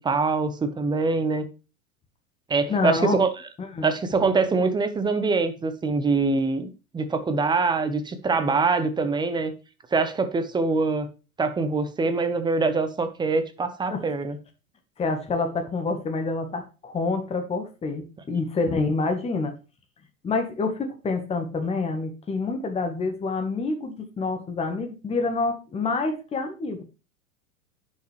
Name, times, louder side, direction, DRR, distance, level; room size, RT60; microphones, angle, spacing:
voice 1, 0.0-1.4 2.5-3.3 3.8-9.5 9.9-11.1 11.4-14.4, right 4 dB, 10° right, 0.8 m, -24 dB
voice 2, 2.7-3.2 3.6-3.9 13.9-14.0 15.0-19.5 20.2-26.8, left 3 dB, 15° left, 1.3 m, -27 dB
10.5 x 5.4 x 3.3 m
figure-of-eight pair, 95°, 43 cm